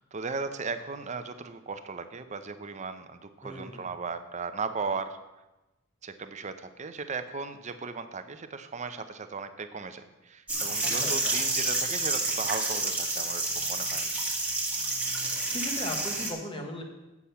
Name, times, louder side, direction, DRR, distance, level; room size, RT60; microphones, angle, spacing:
voice 1, 0.0-5.2 6.0-14.1, right 4 dB, 35° right, 9 dB, 0.6 m, -36 dB
voice 2, 3.4-3.9 10.8-11.3 15.5-16.8, left 1 dB, 25° left, 3 dB, 1.2 m, -37 dB
sound 1, 10.5-16.3, right 2 dB, 10° right, 1.5 m, -29 dB
8.3 x 7.1 x 5.6 m, 1.0 s
head